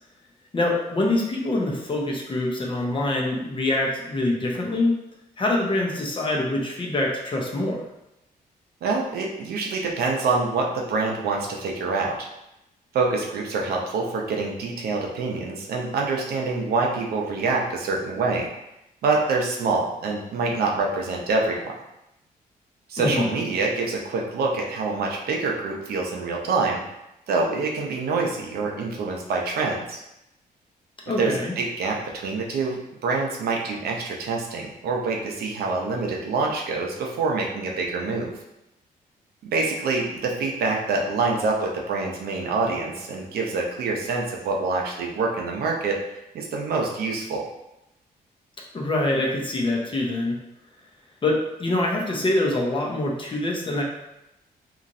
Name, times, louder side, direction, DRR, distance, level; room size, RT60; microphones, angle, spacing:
voice 1, 0.5-4.9 5.4-7.8 23.0-23.4 31.1-31.5 48.7-50.4 51.2-53.8, left 2 dB, 35° left, -1 dB, 0.7 m, -25 dB
voice 2, 8.8-12.3 12.9-18.5 19.0-21.7 22.9-26.8 27.3-30.0 31.2-38.3 39.4-46.0 46.3-47.5, right 3 dB, 80° right, 0 dB, 0.6 m, -26 dB
2.9 x 2.4 x 2.5 m, 0.88 s
cardioid pair, 95°, 16 cm